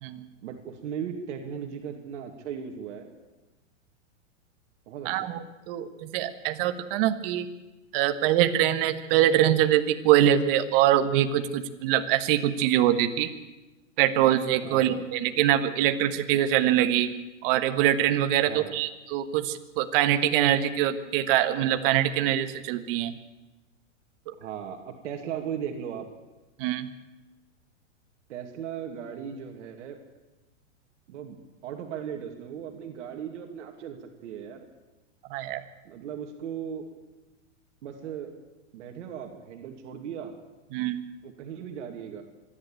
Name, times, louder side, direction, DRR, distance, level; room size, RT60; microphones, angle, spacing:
voice 1, 0.4-3.1 4.9-5.3 14.6-15.0 18.4-18.7 24.4-26.1 28.3-30.0 31.1-31.4 31.6-34.7 35.8-36.9 37.8-38.3 38.7-40.3 41.2-42.2, right 8 dB, 65° right, 4 dB, 2.6 m, -37 dB
voice 2, 5.0-7.5 7.9-13.3 14.0-17.1 17.4-23.1 24.3-24.4 26.6-26.9 35.3-35.6 40.7-41.0, right 12 dB, 45° right, 9 dB, 1.4 m, -24 dB
26.0 x 11.5 x 8.9 m, 1.1 s
hypercardioid pair, 140°, 38 cm